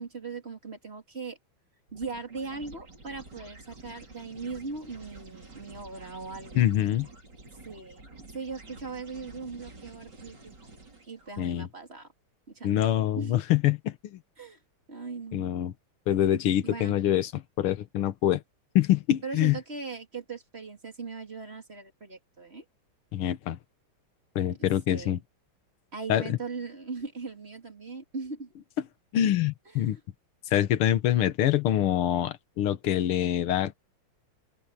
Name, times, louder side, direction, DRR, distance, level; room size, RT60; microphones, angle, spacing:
voice 1, 0.0-1.4 1.9-6.7 7.7-10.5 11.1-12.1 12.5-13.4 14.4-14.6 14.9-15.6 16.6-16.9 19.2-22.6 24.9-25.2 25.9-28.5, right 4 dB, 30° right, 2.8 m, -39 dB
sound 1, 1.9-11.3, right 2 dB, 50° right, 4.9 m, -49 dB
voice 2, 6.6-7.1 11.4-11.7 12.6-14.2 15.3-15.7 16.1-18.4 18.8-19.6 23.1-23.6 24.4-25.2 26.1-26.4 29.1-30.0 30.5-33.8, left 12 dB, 80° left, 2.0 m, -25 dB
open air
omnidirectional pair, 2.4 m